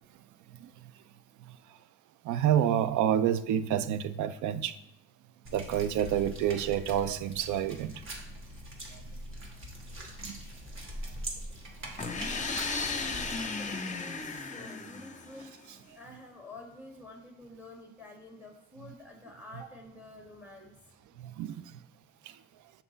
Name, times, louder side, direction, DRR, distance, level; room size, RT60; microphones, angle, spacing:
voice 1, 2.3-4.7 5.5-7.9 10.2-10.4 21.2-21.6, right 10 dB, 80° right, 14 dB, 0.5 m, -28 dB
sound 1, 5.4-13.4, right 1 dB, 40° right, 1.4 m, -42 dB
sound 2, 12.0-15.7, left 4 dB, 25° left, 0.7 m, -35 dB
voice 2, 13.6-15.5 15.9-20.9, left 2 dB, 5° right, 1 dB, 1.6 m, -49 dB
5.9 x 4.2 x 3.9 m, 0.91 s
cardioid pair, 90°, 30 cm